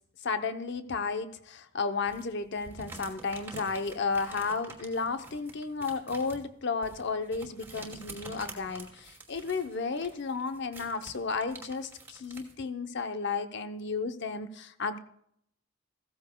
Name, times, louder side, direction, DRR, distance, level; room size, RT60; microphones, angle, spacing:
voice 1, 0.2-15.0, left 4 dB, 55° left, 9 dB, 0.7 m, -33 dB
sound 1, 2.0-12.5, right 3 dB, 10° right, 2.3 m, -48 dB
15.5 x 14.5 x 2.3 m, 0.71 s
head